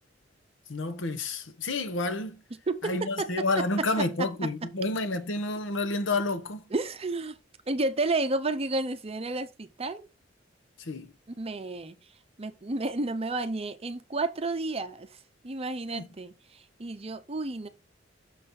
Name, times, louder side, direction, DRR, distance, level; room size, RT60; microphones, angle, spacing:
voice 1, 0.7-2.4 2.8-6.6 10.8-11.1 15.9-16.1, left 2 dB, 75° left, 1.0 m, -30 dB
voice 2, 2.5-4.5 6.7-7.4 7.7-10.1 11.4-12.0 12.4-15.2 15.4-17.7, right 2 dB, 30° right, 0.7 m, -31 dB
6.6 x 4.2 x 5.4 m
head